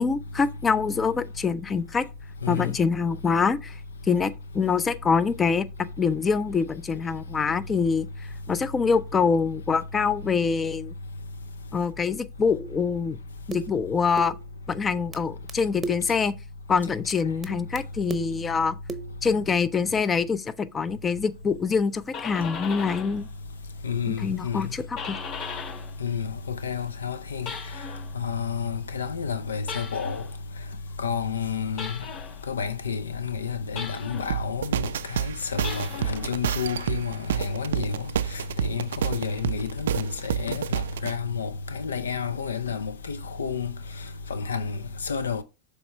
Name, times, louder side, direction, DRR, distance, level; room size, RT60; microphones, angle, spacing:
voice 1, 0.0-2.0 2.5-3.8 4.1-5.6 6.0-8.1 8.5-10.9 11.7-13.2 13.5-14.3 14.7-16.3 16.7-18.8 19.2-23.3 24.1-25.2, left 5 dB, 25° left, 0.5 m, -25 dB
voice 2, 2.4-2.8 23.8-24.7 26.0-27.5 28.1-30.2 31.0-32.0 32.5-38.1 38.6-43.7 44.3-45.4, left 6 dB, 85° left, 0.5 m, -30 dB
sound 1, 12.6-12.9 13.5-13.8 14.2-14.5 15.1-15.2 15.5-15.6 15.8-16.2 17.1-17.2 17.4-17.5 17.8-17.9 18.1-18.5 18.9-19.2, right 4 dB, 20° right, 0.8 m, -35 dB
sound 2, 21.8-23.2 23.6-26.0 26.3-28.1 29.6-30.3 31.8-32.4 33.8-34.4 35.5-36.3, left 5 dB, 55° left, 3.2 m, -38 dB
sound 3, 34.3-41.1, right 9 dB, 75° right, 0.3 m, -29 dB
7.0 x 3.4 x 4.3 m
hypercardioid pair, 90°, 0 cm